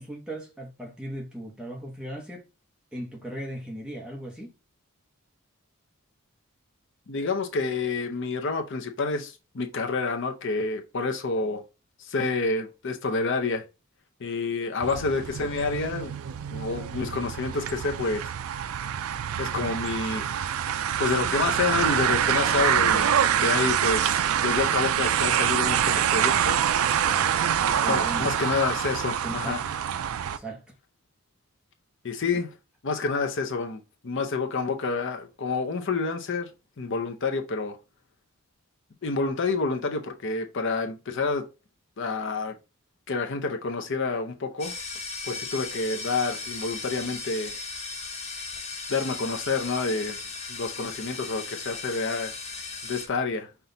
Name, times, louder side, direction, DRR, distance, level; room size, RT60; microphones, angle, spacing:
voice 1, 0.0-2.5 2.9-4.5 27.0-27.4 27.8-28.3 29.1-29.8 30.2-30.7 32.3-32.4, right 1 dB, 5° right, 0.9 m, -38 dB
voice 2, 7.1-11.6 12.0-13.6 14.2-16.2 16.5-18.3 19.4-20.3 21.0-26.6 27.9-29.6 32.0-32.5 32.8-36.5 36.8-37.8 39.0-41.5 42.0-42.6 43.1-44.7 45.2-47.5 48.9-50.2 50.5-52.3 52.8-53.5, left 4 dB, 55° left, 0.6 m, -28 dB
sound 1, 14.8-30.4, right 9 dB, 75° right, 0.3 m, -25 dB
sound 2, 44.6-53.1, left 3 dB, 30° left, 1.0 m, -37 dB
5.6 x 2.3 x 3.8 m
head